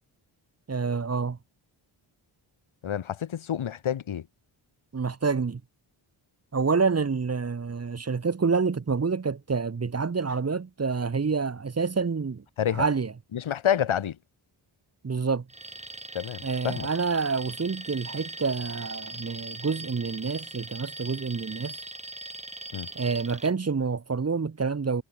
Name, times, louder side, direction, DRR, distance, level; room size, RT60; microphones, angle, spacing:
voice 1, 0.7-1.4 4.9-5.6 6.5-13.1 15.0-15.4 16.4-21.8 22.9-25.0, right 5 dB, 30° right, 1.3 m, -28 dB
voice 2, 2.8-4.3 12.6-12.9 13.3-14.2 16.1-16.9 22.7-22.9, left 9 dB, 75° left, 2.0 m, -28 dB
Alarm, 15.5-23.5, right 2 dB, 15° right, 4.5 m, -40 dB
wide cardioid pair, 105°, 48 cm